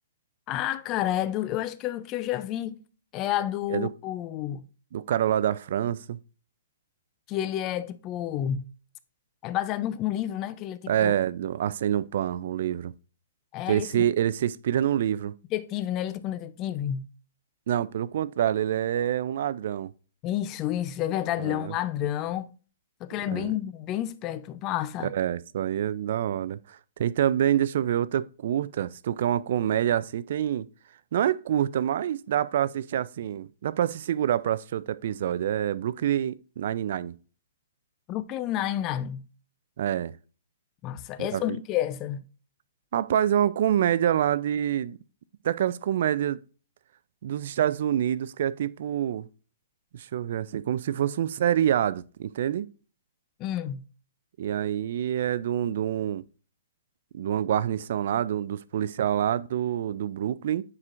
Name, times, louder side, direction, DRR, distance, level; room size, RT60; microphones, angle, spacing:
voice 1, 0.5-2.8 3.1-4.6 7.3-8.7 9.4-11.1 13.5-14.0 15.5-17.0 20.2-22.5 23.0-25.1 38.1-39.2 40.8-42.2 53.4-53.8, left 12 dB, 30° left, 0.5 m, -30 dB
voice 2, 4.9-6.2 10.9-12.9 13.7-15.3 17.7-19.9 21.4-21.7 23.3-23.5 25.1-30.7 31.1-37.1 39.8-40.1 41.2-41.6 42.9-45.0 45.4-46.4 47.2-49.3 49.9-52.7 54.4-56.2 57.1-60.6, right 10 dB, 60° right, 0.4 m, -26 dB
9.7 x 4.4 x 2.5 m
hypercardioid pair, 145°, 0 cm